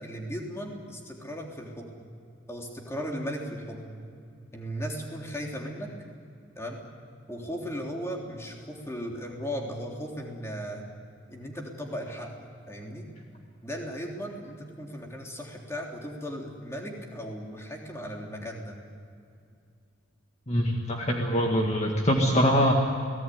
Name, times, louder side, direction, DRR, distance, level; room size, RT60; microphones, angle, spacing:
voice 1, 0.0-2.1 2.5-4.0 4.5-5.9 6.6-6.8 7.3-10.9 11.3-12.3 12.7-13.1 13.6-18.8, equal, 15° left, 0 dB, 3.5 m, -36 dB
voice 2, 20.5-22.7, equal, 35° left, 0 dB, 2.0 m, -23 dB
29.5 x 18.5 x 9.5 m, 2.4 s
head